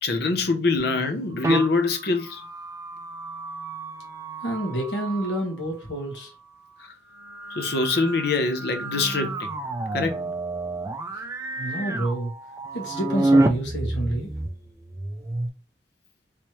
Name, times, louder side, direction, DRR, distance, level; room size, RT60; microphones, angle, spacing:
voice 1, 0.0-2.4 7.5-9.5 9.9-10.2, left 3 dB, 60° left, 0.7 m, -24 dB
sound 1, 1.3-5.5 7.1-15.5, right 2 dB, 15° right, 0.4 m, -29 dB
voice 2, 4.4-6.3 11.1-11.2 11.5-12.3 12.7-14.3, right 1 dB, 80° left, 1.5 m, -28 dB
3.3 x 3.1 x 3.0 m
head